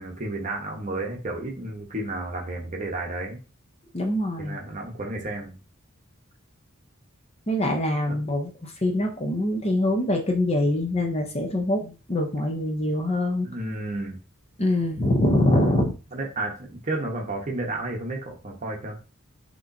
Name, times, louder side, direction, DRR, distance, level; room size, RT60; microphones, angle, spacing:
voice 1, 0.0-3.4 4.4-5.5 8.1-8.2 13.4-14.2 16.1-19.0, right 2 dB, 35° right, 1 dB, 1.0 m, -32 dB
voice 2, 3.9-4.6 7.5-13.5 14.6-15.9, left 1 dB, 30° left, 2 dB, 0.7 m, -24 dB
6.5 x 3.0 x 2.7 m, 0.33 s
head